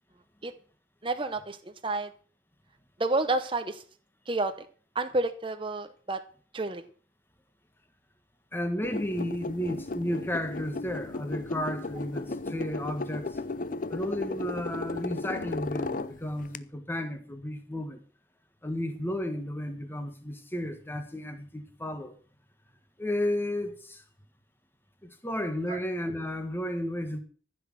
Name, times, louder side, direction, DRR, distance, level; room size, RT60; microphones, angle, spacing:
voice 1, 1.0-2.1 3.0-3.8 4.3-4.7 4.9-6.2 6.5-6.8 25.7-25.8, right 2 dB, 25° right, 0.8 m, -30 dB
voice 2, 8.5-13.4 13.9-18.0 18.6-22.1 23.0-24.0 25.0-27.2, left 1 dB, 10° left, 1.5 m, -33 dB
sound 1, 8.8-16.6, left 3 dB, 40° left, 0.5 m, -35 dB
14.5 x 6.2 x 7.6 m
head